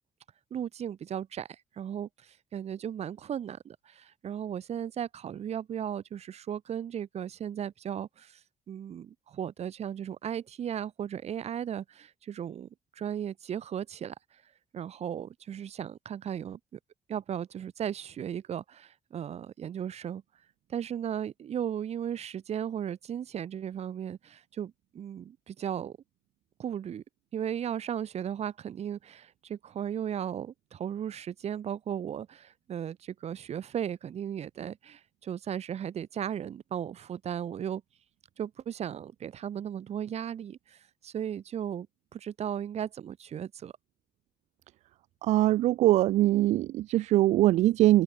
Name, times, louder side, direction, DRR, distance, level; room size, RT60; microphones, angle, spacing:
voice 1, 0.5-1.5 1.8-2.1 2.5-8.4 8.7-12.7 13.0-14.1 14.7-16.6 17.1-20.2 20.7-26.0 26.6-27.0 27.3-37.8 38.4-40.8 41.0-41.9 42.1-43.7, right 9 dB, 70° right, 4.4 m, -36 dB
voice 2, 45.2-48.0, right 15 dB, 90° right, 0.4 m, -22 dB
cardioid pair, 85°, 11 cm